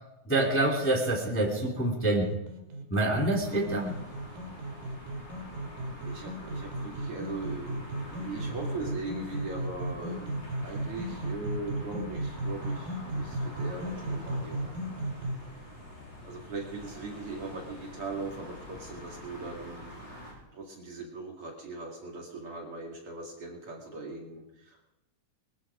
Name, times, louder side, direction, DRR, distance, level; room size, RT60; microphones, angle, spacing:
voice 1, 0.2-2.3 2.9-3.9, right 2 dB, 5° left, 0 dB, 2.2 m, -26 dB
sound 1, 2.2-15.3, right 1 dB, 85° right, 3.9 m, -36 dB
sound 2, 3.4-20.3, left 1 dB, 30° left, 5.2 m, -46 dB
voice 2, 6.0-7.8 8.1-14.7 16.2-20.1 20.5-24.8, right 3 dB, 45° right, 0 dB, 2.9 m, -40 dB
21.0 x 13.0 x 5.0 m, 0.92 s
omnidirectional pair, 3.8 m